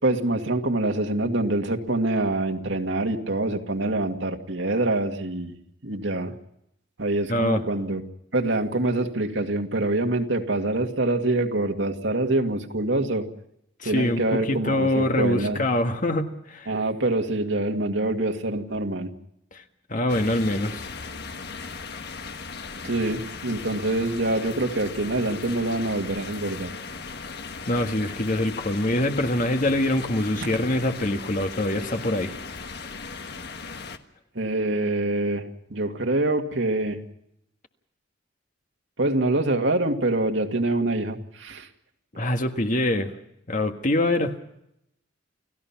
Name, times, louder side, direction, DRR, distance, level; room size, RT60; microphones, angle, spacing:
voice 1, 0.0-5.5 5.8-6.3 7.0-8.0 8.3-13.2 13.8-15.6 16.7-19.1 22.8-26.7 34.4-35.4 35.7-37.0 39.0-41.7, right 2 dB, 75° right, 4 dB, 2.2 m, -25 dB
voice 2, 7.3-7.6 13.8-16.7 19.9-20.8 27.7-32.3 42.2-43.1 43.5-44.3, left 1 dB, 45° left, 6 dB, 1.7 m, -24 dB
sound 1, 20.1-34.0, left 4 dB, 60° left, 1.4 m, -37 dB
29.5 x 16.5 x 5.9 m, 0.79 s
head